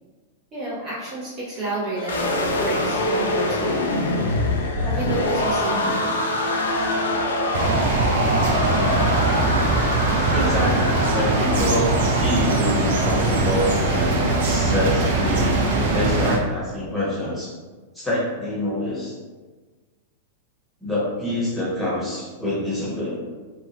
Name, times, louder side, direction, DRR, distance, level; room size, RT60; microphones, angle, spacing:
voice 1, 0.5-4.1 4.8-6.1, right 2 dB, 25° right, -9 dB, 0.9 m, -30 dB
sound 1, 1.9-7.7, equal, 50° left, 0.7 m, -29 dB
sound 2, 2.1-14.1, left 2 dB, 70° left, 0.3 m, -26 dB
sound 3, 7.5-16.4, right 2 dB, 60° right, 0.5 m, -21 dB
voice 2, 10.3-15.6 15.9-17.5 17.9-19.2 20.8-23.2, left 1 dB, 5° left, -8 dB, 1.1 m, -26 dB
2.5 x 2.0 x 2.9 m, 1.3 s
figure-of-eight pair, 95°, 0 cm